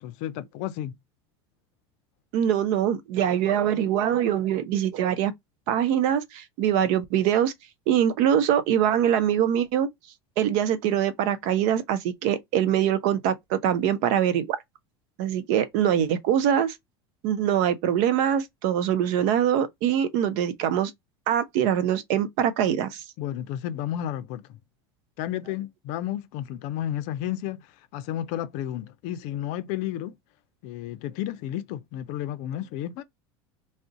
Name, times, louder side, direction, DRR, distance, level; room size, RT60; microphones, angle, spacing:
voice 1, 0.0-0.9 23.2-24.6 25.2-30.2 30.6-33.0, left 12 dB, 60° left, 0.5 m, -32 dB
voice 2, 2.3-5.3 5.7-7.5 7.9-9.9 10.4-14.6 15.2-16.8 17.2-20.9 21.3-23.0, right 9 dB, 60° right, 0.6 m, -23 dB
2.5 x 2.1 x 3.6 m
hypercardioid pair, 90°, 14 cm